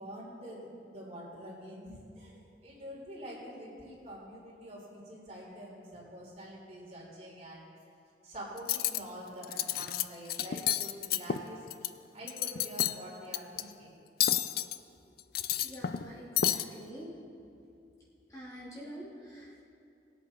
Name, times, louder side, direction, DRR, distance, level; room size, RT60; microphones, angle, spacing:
voice 1, 0.0-7.7 8.2-11.7 12.1-14.0, equal, 40° right, -4 dB, 3.6 m, -46 dB
Cutlery silverware, 8.6-9.0 9.4-10.0 10.3-11.9 12.2-13.0 13.3-13.6 14.2-14.8 15.2-16.1 16.4-16.6, left 11 dB, 55° left, 0.4 m, -30 dB
voice 2, 15.5-17.2 18.3-19.6, equal, 20° left, -8 dB, 2.6 m, -46 dB
21.5 x 8.2 x 4.4 m, 2.5 s
head